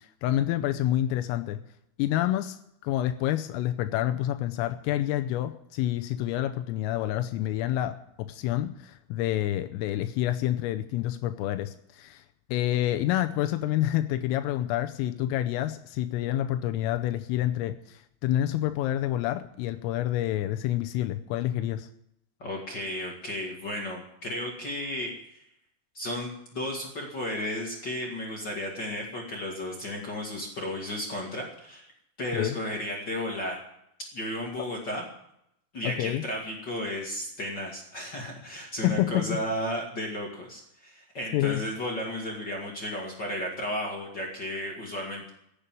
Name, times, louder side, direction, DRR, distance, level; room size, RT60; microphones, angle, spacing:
voice 1, 0.0-1.6 2.0-2.6 2.8-12.2 12.5-21.9 32.3-32.6 35.8-36.2 38.8-39.4 41.3-41.6, left 13 dB, 85° left, 8 dB, 3.3 m, -28 dB
voice 2, 22.4-25.4 25.9-31.9 32.2-33.6 34.1-35.1 35.7-45.3, left 1 dB, 45° left, 0 dB, 1.3 m, -34 dB
15.5 x 8.4 x 9.0 m, 0.77 s
omnidirectional pair, 5.8 m